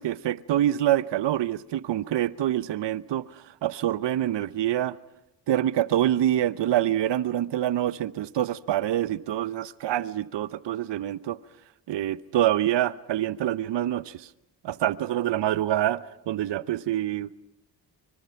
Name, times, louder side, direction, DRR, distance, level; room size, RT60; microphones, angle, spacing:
voice 1, 0.0-3.3 3.6-5.0 5.5-11.4 11.9-14.3 14.6-17.4, right 12 dB, 70° right, 0.9 m, -26 dB
24.5 x 24.5 x 5.8 m
supercardioid pair, 50°, 45 cm